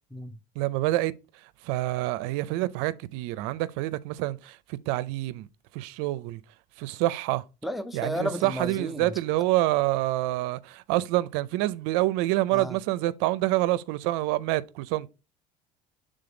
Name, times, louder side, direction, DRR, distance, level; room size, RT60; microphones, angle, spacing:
voice 1, 0.6-1.1 1.6-5.5 5.7-6.4 6.8-7.4 7.9-15.1, right 17 dB, 80° right, 0.4 m, -27 dB
voice 2, 7.6-9.1 12.5-12.8, equal, ahead, 0.4 m, -33 dB
6.9 x 3.7 x 3.8 m
cardioid pair, 120°, 16 cm